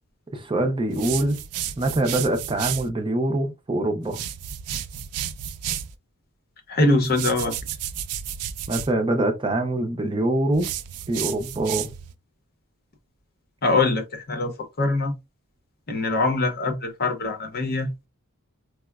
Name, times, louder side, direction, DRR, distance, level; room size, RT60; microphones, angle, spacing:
voice 1, 0.3-1.4 1.8-4.2 8.7-10.7 11.1-11.9, right 1 dB, 20° right, 0.4 m, -24 dB
sound 1, 0.9-2.9 4.0-5.9 7.0-8.9 10.5-12.1, right 10 dB, 85° right, 0.4 m, -32 dB
voice 2, 6.7-7.6 13.6-15.1 15.9-17.9, left 2 dB, 45° left, 0.7 m, -23 dB
4.7 x 2.0 x 2.3 m
head